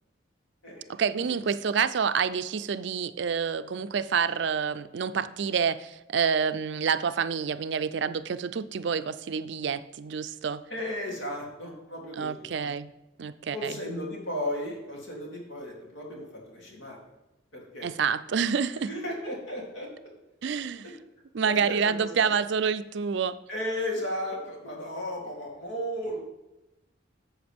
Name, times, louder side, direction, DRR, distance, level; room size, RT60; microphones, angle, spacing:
voice 1, 0.9-10.6 12.2-12.9 13.2-13.8 17.8-18.9 20.4-20.9 21.3-23.4, right 6 dB, 60° right, 13 dB, 0.4 m, -28 dB
voice 2, 10.7-12.5 13.5-17.0 17.5-17.9 18.7-19.9 21.4-22.3 23.5-26.2, left 1 dB, 80° left, -2 dB, 3.0 m, -35 dB
13.0 x 7.3 x 3.5 m, 0.98 s
head